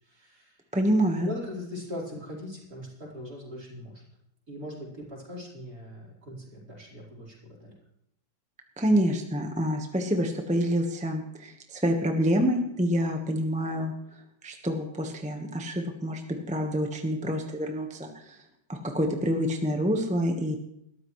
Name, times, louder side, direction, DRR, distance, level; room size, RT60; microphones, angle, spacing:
voice 1, 0.0-0.6 1.2-4.0 4.5-7.7, left 1 dB, 45° right, -4 dB, 5.1 m, -40 dB
voice 2, 0.7-1.3 8.8-13.9 14.4-16.2 16.5-18.4 18.7-20.6, equal, 5° right, 3 dB, 0.9 m, -27 dB
21.0 x 13.5 x 3.2 m, 0.78 s
omnidirectional pair, 2.1 m